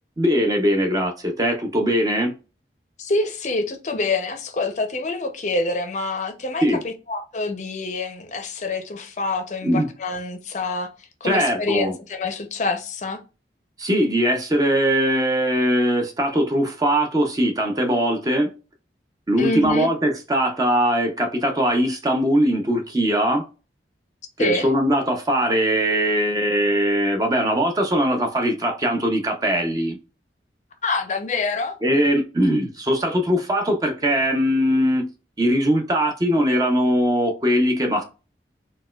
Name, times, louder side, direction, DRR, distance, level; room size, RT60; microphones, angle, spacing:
voice 1, 0.2-2.3 6.6-6.8 9.6-9.9 11.2-11.9 13.8-18.5 19.3-23.5 24.4-30.0 31.8-35.1 35.4-38.0, equal, 20° right, 0.5 m, -21 dB
voice 2, 3.0-10.9 11.2-13.2 19.4-19.9 24.4-24.7 30.8-31.8, left 3 dB, 40° left, 0.5 m, -26 dB
4.0 x 2.2 x 2.2 m
head